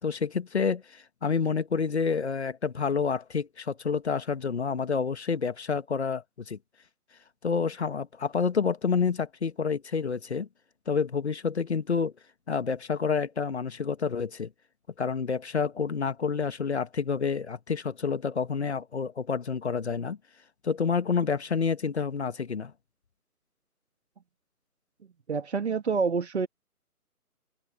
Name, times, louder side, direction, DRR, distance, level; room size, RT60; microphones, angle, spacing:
voice 1, 0.0-6.6 7.4-10.5 10.9-12.1 12.5-14.5 15.0-20.2 20.6-22.7, left 5 dB, 45° left, 1.8 m, -28 dB
voice 2, 25.3-26.5, right 5 dB, 45° right, 1.9 m, -27 dB
figure-of-eight pair, 155°, 46 cm